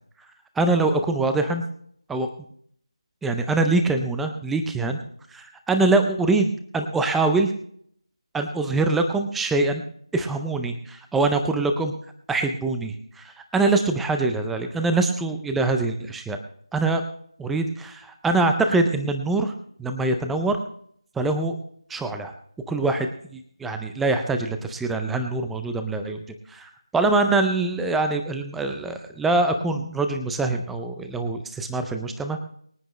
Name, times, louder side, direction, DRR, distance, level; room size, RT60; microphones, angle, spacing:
voice 1, 0.6-1.6 2.1-2.3 3.2-5.0 5.3-7.5 8.3-9.8 10.1-11.9 12.3-16.4 16.7-17.0 17.4-19.5 19.8-20.6 21.2-21.6 21.9-22.3 22.7-26.2 26.5-32.5, right 3 dB, ahead, 6 dB, 0.4 m, -24 dB
24.0 x 8.8 x 3.1 m, 0.64 s
figure-of-eight pair, 170°, 3 cm